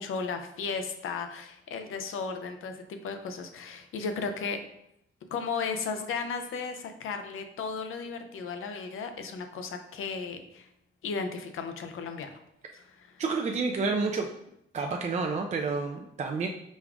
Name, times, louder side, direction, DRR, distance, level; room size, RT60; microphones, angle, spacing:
voice 1, 0.0-4.6 5.3-10.7 11.0-12.4 12.7-13.2, left 5 dB, 80° left, 7 dB, 0.6 m, -35 dB
voice 2, 13.2-14.3 14.7-16.5, right 4 dB, 35° right, 2 dB, 0.4 m, -29 dB
5.2 x 2.4 x 3.4 m, 0.79 s
cardioid pair, 90°, 21 cm